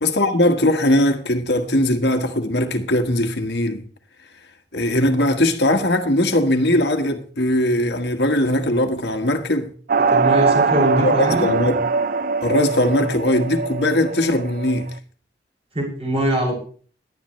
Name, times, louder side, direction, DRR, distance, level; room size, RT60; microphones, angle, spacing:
voice 1, 0.0-3.8 4.7-9.7 11.0-11.8 12.4-14.9, left 1 dB, 65° left, 1.5 m, -20 dB
sound 1, 9.9-14.9, right 4 dB, 50° right, 0.5 m, -21 dB
voice 2, 10.0-11.5 15.7-16.5, right 1 dB, 35° right, 6.3 m, -22 dB
18.5 x 11.5 x 3.2 m
head